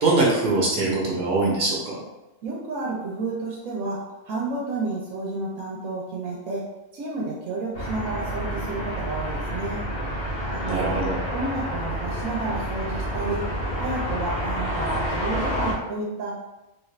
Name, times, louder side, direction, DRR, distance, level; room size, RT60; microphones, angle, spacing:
voice 1, 0.0-2.0 10.6-11.2, right 2 dB, 45° right, -4 dB, 1.0 m, -22 dB
voice 2, 2.4-6.7 6.9-9.8 10.5-11.0 11.3-13.5 13.8-16.3, right 3 dB, 90° right, -3 dB, 1.1 m, -31 dB
sound 1, 7.7-15.7, equal, 55° left, 0.8 m, -29 dB
3.2 x 2.4 x 3.1 m, 0.98 s
omnidirectional pair, 1.4 m